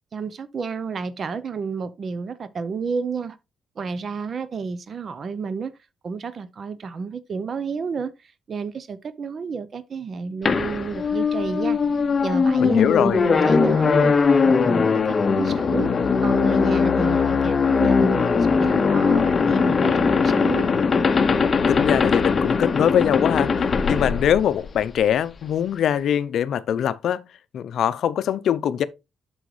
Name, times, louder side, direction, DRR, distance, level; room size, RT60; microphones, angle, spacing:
voice 1, 0.1-3.4 3.8-5.7 6.0-8.1 8.5-11.8 12.2-14.1 14.4-14.9 15.2-15.9 16.2-20.8, right 5 dB, 45° right, 0.6 m, -30 dB
sound 1, 10.5-25.0, left 5 dB, 35° left, 0.8 m, -20 dB
voice 2, 12.6-13.2 21.7-27.2 27.5-28.8, left 9 dB, 70° left, 0.5 m, -22 dB
7.8 x 6.2 x 3.2 m
cardioid pair, 90°, 0 cm